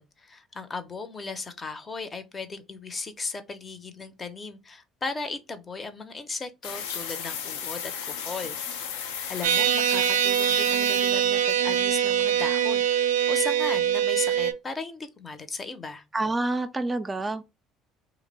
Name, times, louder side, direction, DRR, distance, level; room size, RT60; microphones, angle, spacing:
voice 1, 0.0-8.8 9.1-16.0, left 3 dB, 30° left, 0.6 m, -36 dB
sound 1, 6.6-12.0, left 7 dB, 85° left, 0.4 m, -36 dB
sound 2, 9.4-14.5, right 9 dB, 85° right, 0.4 m, -23 dB
voice 2, 16.1-17.4, right 2 dB, 20° right, 0.4 m, -27 dB
2.8 x 2.0 x 3.9 m
hypercardioid pair, 70°, 0 cm